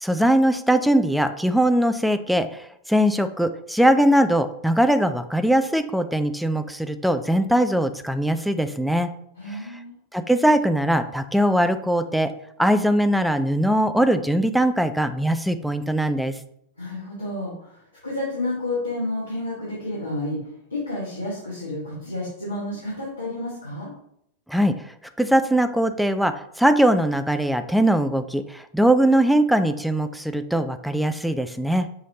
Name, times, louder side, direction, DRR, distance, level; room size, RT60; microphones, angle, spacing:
voice 1, 0.0-9.1 9.5-9.6 10.1-12.3 12.6-16.4 24.5-24.8 25.2-31.9, right 1 dB, ahead, 9 dB, 0.3 m, -21 dB
voice 2, 9.4-10.0 16.8-20.4 20.7-23.9, left 2 dB, 80° left, -7 dB, 1.4 m, -30 dB
5.6 x 3.0 x 2.8 m, 0.72 s
figure-of-eight pair, 90°, 0 cm